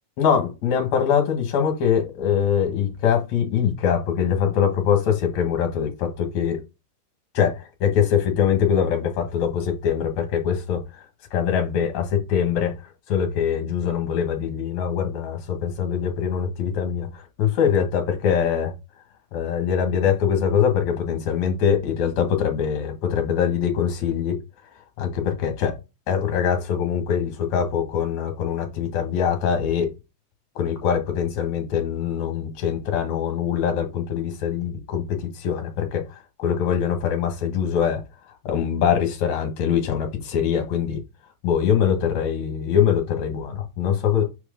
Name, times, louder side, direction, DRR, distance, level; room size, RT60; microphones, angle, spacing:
voice 1, 0.2-6.6 7.3-10.8 11.3-12.8 13.1-18.7 19.3-24.4 25.0-25.7 26.1-30.0 30.6-38.0 38.4-41.0 41.4-44.2, left 8 dB, 60° left, 2.6 m, -23 dB
5.3 x 4.5 x 5.1 m
omnidirectional pair, 4.0 m